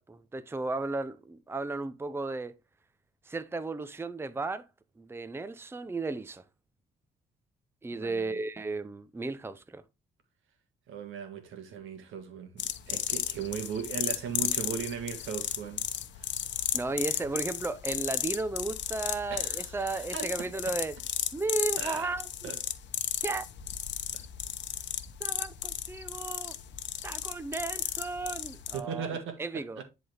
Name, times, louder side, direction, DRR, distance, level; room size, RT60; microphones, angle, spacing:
voice 1, 0.0-2.5 3.3-4.7 5.0-6.4 7.8-9.8 16.7-21.0 21.3-22.5 23.2-23.5 25.2-26.5 27.0-29.8, right 3 dB, 10° right, 0.6 m, -34 dB
voice 2, 7.9-8.4 10.9-15.9 16.1-16.3 19.3-20.5 21.8-22.1 22.4-22.6 24.1-24.2 28.7-29.8, right 7 dB, 80° right, 1.6 m, -38 dB
sound 1, 12.6-28.8, left 10 dB, 65° left, 0.9 m, -34 dB
10.5 x 4.1 x 3.3 m
cardioid pair, 90°, 20 cm